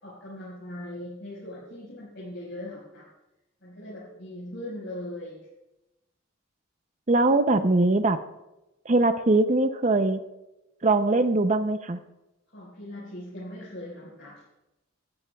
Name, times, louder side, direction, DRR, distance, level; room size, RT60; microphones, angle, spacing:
voice 1, 0.0-3.1 3.6-5.4 12.5-14.4, left 1 dB, 60° left, -8 dB, 4.9 m, -40 dB
voice 2, 7.1-8.2 8.9-10.2 10.8-12.0, right 2 dB, 35° right, 9 dB, 0.6 m, -21 dB
18.0 x 13.5 x 2.3 m, 0.94 s
head